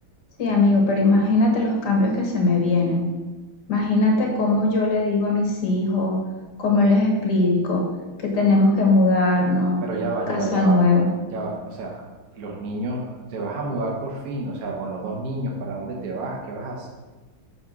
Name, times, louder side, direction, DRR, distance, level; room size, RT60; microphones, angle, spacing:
voice 1, 0.4-3.0 3.7-6.2 6.6-7.8 8.2-9.8 10.3-11.1, left 2 dB, 60° left, 0 dB, 1.7 m, -19 dB
voice 2, 9.8-10.8 11.3-12.0 12.3-16.9, right 2 dB, 50° right, -1 dB, 1.4 m, -30 dB
6.4 x 4.3 x 5.9 m, 1.2 s
omnidirectional pair, 2.2 m